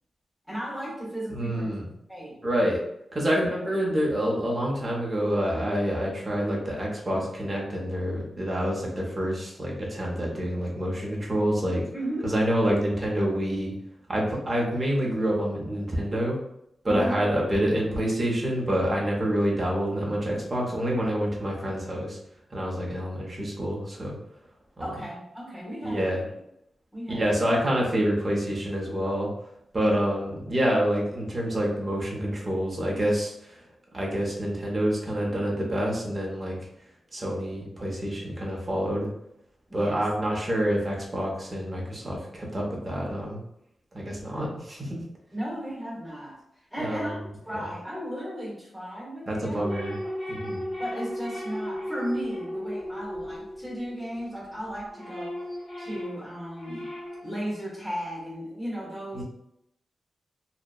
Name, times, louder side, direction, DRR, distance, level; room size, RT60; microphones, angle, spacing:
voice 1, 0.5-1.7 2.1-2.4 3.2-3.5 11.9-12.3 16.8-17.2 24.8-26.2 26.9-27.4 39.7-40.1 44.3-44.6 45.3-46.4 46.7-47.2 47.5-49.6 50.0-50.1 50.8-55.4 55.8-56.9 57.2-59.2, equal, 5° left, -7 dB, 1.1 m, -35 dB
voice 2, 1.3-1.9 2.4-2.8 3.1-11.8 12.2-13.7 14.1-16.4 16.8-22.2 22.5-24.2 24.8-24.9 25.8-26.2 27.1-29.3 29.7-33.6 33.9-36.6 37.1-39.1 39.7-43.4 43.9-45.0 46.8-47.1 47.5-47.6 49.3-50.0 50.3-50.6 59.1-59.2, equal, 25° right, -3 dB, 0.6 m, -27 dB
sound 1, 49.6-54.3 54.7-57.4, equal, 60° left, 1.3 m, -36 dB
2.6 x 2.0 x 2.2 m, 0.80 s
wide cardioid pair, 165°, 0 cm